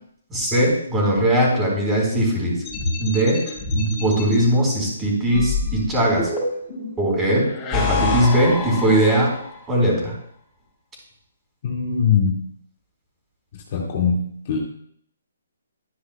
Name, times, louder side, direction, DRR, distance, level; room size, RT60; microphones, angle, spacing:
voice 1, 0.3-2.5 3.0-3.4 3.7-6.2 7.0-9.3 9.7-10.0, right 1 dB, 15° right, -3 dB, 4.1 m, -19 dB
sound 1, 2.6-4.4 5.3-6.8 7.4-9.6, left 4 dB, 25° left, 4.4 m, -26 dB
voice 2, 11.6-12.4 13.7-14.2 14.5-14.6, left 6 dB, 45° left, -1 dB, 2.0 m, -21 dB
12.0 x 9.7 x 2.2 m, 0.65 s
hypercardioid pair, 145°, 0 cm